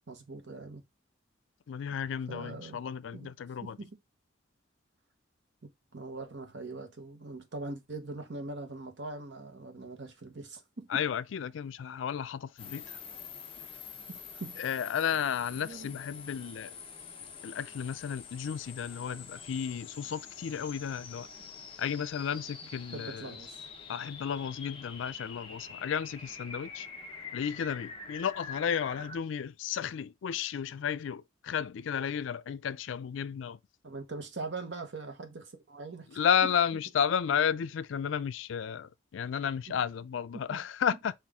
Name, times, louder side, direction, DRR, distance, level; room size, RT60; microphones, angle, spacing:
voice 1, 0.1-0.8 2.3-2.8 3.1-3.3 3.6-4.0 5.6-11.1 14.1-14.7 15.6-15.9 21.4-21.5 22.9-23.6 33.8-36.2 39.7-39.8 40.5-40.6, right 3 dB, 70° right, 1.0 m, -42 dB
voice 2, 1.7-3.8 10.9-13.0 14.6-16.7 17.4-21.3 21.8-23.3 23.9-26.9 27.3-33.6 36.1-41.1, left 8 dB, 80° left, 0.4 m, -33 dB
sound 1, 12.6-29.2, left 6 dB, 25° left, 0.8 m, -46 dB
5.7 x 2.5 x 3.5 m
head